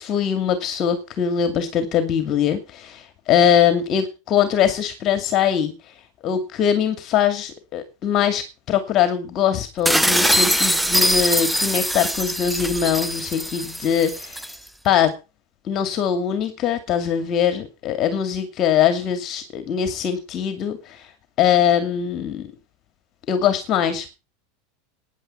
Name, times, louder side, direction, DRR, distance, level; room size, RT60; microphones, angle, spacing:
voice 1, 0.0-5.7 6.2-14.4 14.8-15.1 15.7-21.1 21.4-22.5 23.3-24.1, left 9 dB, 45° left, 9 dB, 2.4 m, -22 dB
sound 1, 9.9-14.6, equal, 5° right, 0.7 m, -22 dB
14.5 x 9.9 x 5.7 m, 0.31 s
hypercardioid pair, 95°, 0 cm